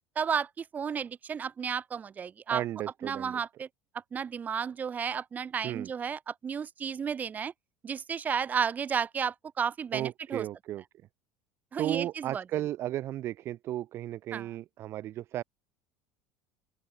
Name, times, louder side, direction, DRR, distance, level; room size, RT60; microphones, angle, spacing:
voice 1, 0.2-2.6 3.0-3.7 4.1-7.5 7.8-10.4 11.7-12.4 14.3-14.5, right 7 dB, 30° right, 2.4 m, -32 dB
voice 2, 2.5-3.4 5.6-5.9 9.9-10.8 11.8-15.4, right 13 dB, 50° right, 2.9 m, -34 dB
open air
supercardioid pair, 105°, 5 cm